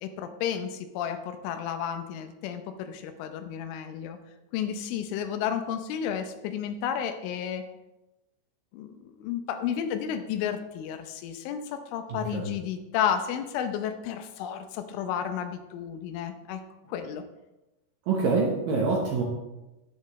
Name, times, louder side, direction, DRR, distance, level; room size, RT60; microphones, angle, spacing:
voice 1, 0.0-4.2 4.5-7.6 8.7-16.6 16.9-17.2, left 8 dB, 90° left, 8 dB, 3.3 m, -32 dB
voice 2, 12.1-12.5 18.1-19.2, right 4 dB, 70° right, -2 dB, 2.2 m, -26 dB
11.0 x 9.9 x 3.2 m, 1.0 s
omnidirectional pair, 5.4 m